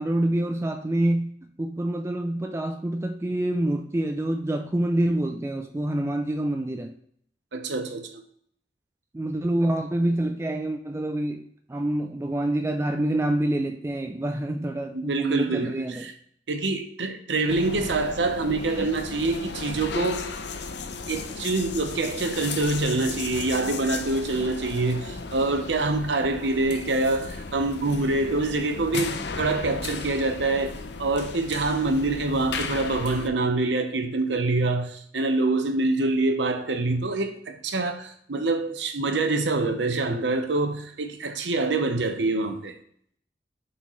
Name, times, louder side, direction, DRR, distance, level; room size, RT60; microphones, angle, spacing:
voice 1, 0.0-6.9 9.1-16.1 18.7-18.9, right 1 dB, 15° right, 0.4 m, -27 dB
voice 2, 7.5-8.2 14.9-16.1 16.5-20.3 21.1-42.7, right 2 dB, 75° right, 0.8 m, -26 dB
sound 1, 17.5-33.3, left 4 dB, 70° left, 0.6 m, -35 dB
10.5 x 4.2 x 3.1 m
head